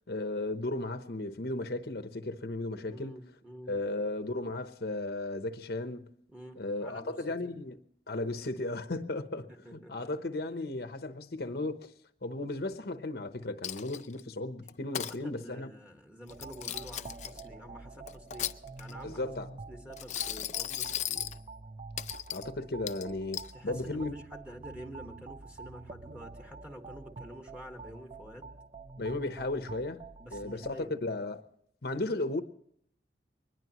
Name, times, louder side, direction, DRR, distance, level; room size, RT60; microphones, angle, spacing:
voice 1, 0.1-3.2 3.7-6.1 6.6-7.8 8.1-11.9 12.2-15.7 19.0-19.5 22.3-24.1 29.0-30.0 30.3-31.4 31.8-32.4, left 2 dB, 60° left, 0.9 m, -35 dB
voice 2, 2.9-3.7 6.3-7.1 7.4-7.5 9.6-10.1 14.9-18.5 18.8-19.3 19.7-21.3 23.5-28.5 30.2-31.0, equal, 10° right, 1.5 m, -48 dB
Coin (dropping), 13.6-14.2 14.7-15.2 16.3-17.4 18.1-19.0 19.9-21.4 22.0-22.5 22.9-23.5, left 11 dB, 40° left, 0.5 m, -36 dB
sound 1, 16.3-30.7, right 3 dB, 35° right, 0.6 m, -48 dB
22.5 x 20.5 x 3.0 m
head